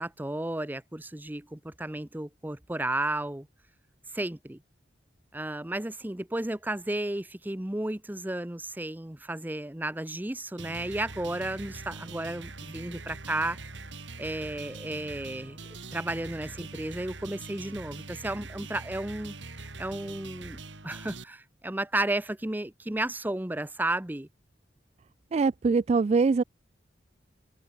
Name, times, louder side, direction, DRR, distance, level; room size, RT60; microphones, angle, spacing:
voice 1, 0.0-3.5 4.1-4.6 5.3-13.6 14.2-19.3 19.8-24.3, right 1 dB, 10° right, 0.7 m, -33 dB
sound 1, 10.6-21.2, right 3 dB, 80° right, 3.5 m, -43 dB
voice 2, 25.3-26.4, right 4 dB, 35° right, 0.3 m, -23 dB
head